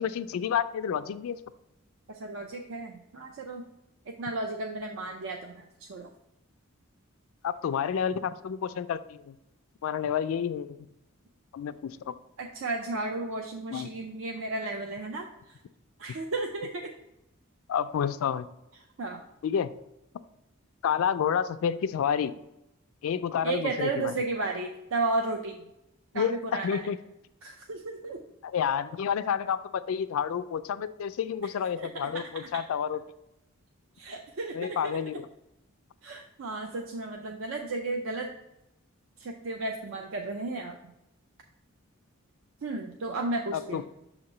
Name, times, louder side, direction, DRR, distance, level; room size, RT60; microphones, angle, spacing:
voice 1, 0.0-1.4 7.4-9.4 9.8-10.8 11.5-12.1 13.7-13.9 17.7-18.5 19.4-19.7 20.8-22.3 23.0-24.1 26.1-27.0 28.4-33.0 34.5-35.3 43.5-43.9, left 8 dB, 75° left, 12 dB, 0.3 m, -29 dB
voice 2, 2.1-3.6 4.1-6.1 12.4-15.6 16.0-16.9 19.0-19.2 23.4-25.7 26.1-26.9 27.4-28.2 31.8-31.9 32.1-32.6 34.0-35.0 36.0-38.3 39.2-40.9 42.6-43.9, right 3 dB, 65° right, 3 dB, 0.5 m, -34 dB
6.9 x 2.9 x 5.3 m, 0.88 s
head